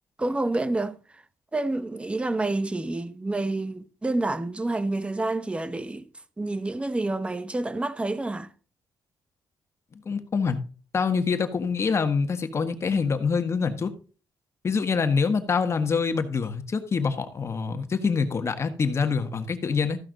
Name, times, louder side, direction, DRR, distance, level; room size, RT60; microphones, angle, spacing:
voice 1, 0.2-1.0 1.5-6.1 6.4-8.5, right 2 dB, 15° right, 0.8 m, -28 dB
voice 2, 10.0-10.6 10.9-13.9 14.6-20.0, left 5 dB, 35° left, 1.5 m, -25 dB
14.5 x 5.9 x 3.9 m
cardioid pair, 125°, 8 cm